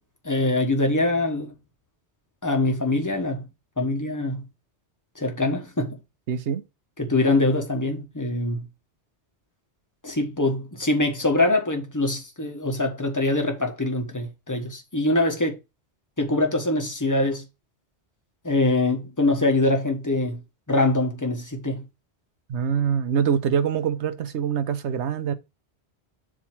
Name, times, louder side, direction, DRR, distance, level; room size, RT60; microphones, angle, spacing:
voice 1, 0.2-1.5 2.4-3.5 3.8-4.5 5.2-6.0 7.0-8.7 10.0-15.6 16.2-17.4 18.4-20.4 20.7-21.9, left 2 dB, 15° left, 1.2 m, -23 dB
voice 2, 6.3-6.6 22.5-25.3, right 7 dB, 85° right, 1.1 m, -24 dB
7.5 x 3.0 x 6.0 m
omnidirectional pair, 1.1 m